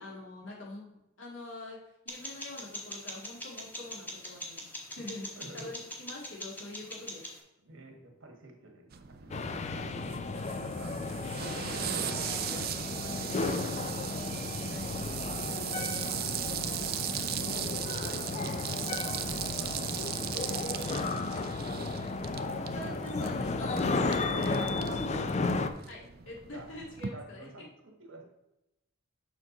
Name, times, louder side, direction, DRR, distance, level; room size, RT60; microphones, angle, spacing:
voice 1, 0.0-5.3 5.5-7.2 11.0-15.1 15.4-15.9 17.9-18.8 22.7-24.8 25.9-27.7, left 2 dB, 70° left, -3 dB, 2.2 m, -46 dB
sound 1, 2.1-7.4, left 1 dB, 10° left, 1.1 m, -43 dB
voice 2, 5.3-5.7 7.6-10.0 10.6-11.4 15.4-15.8 16.2-17.5 18.1-18.5 19.1-23.3 24.3-25.5 26.5-26.7 27.1-28.2, right 2 dB, 75° right, 2 dB, 1.7 m, -50 dB
sound 2, 8.9-27.1, right 10 dB, 45° right, 0.5 m, -38 dB
sound 3, 9.3-25.7, left 3 dB, 35° left, 0.4 m, -34 dB
6.7 x 5.9 x 3.9 m, 0.90 s
head